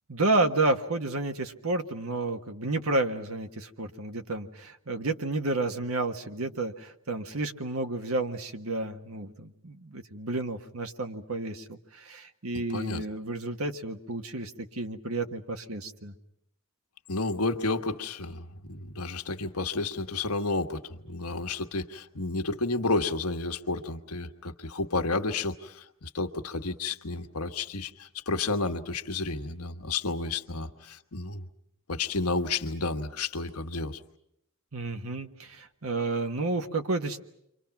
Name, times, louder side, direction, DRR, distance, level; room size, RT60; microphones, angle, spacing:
voice 1, 0.1-16.1 34.7-37.2, right 2 dB, 75° right, 7 dB, 1.5 m, -31 dB
voice 2, 12.7-13.0 17.1-31.5 31.9-34.0, left 3 dB, 90° left, 6 dB, 1.4 m, -31 dB
30.0 x 24.5 x 5.9 m, 0.78 s
head